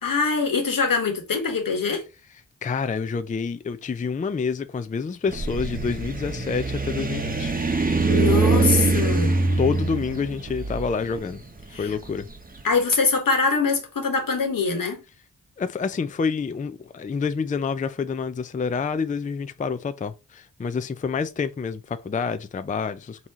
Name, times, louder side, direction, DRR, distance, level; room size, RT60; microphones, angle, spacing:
voice 1, 0.0-2.0 7.8-9.4 11.7-11.9 12.6-15.0, left 4 dB, 80° left, 1.4 m, -23 dB
voice 2, 2.6-7.5 8.5-8.8 9.6-11.4 11.7-12.3 15.6-23.3, left 5 dB, 25° left, 0.4 m, -28 dB
sound 1, 5.3-12.4, right 3 dB, 25° right, 0.9 m, -23 dB
4.1 x 3.0 x 3.6 m
cardioid pair, 55°, 34 cm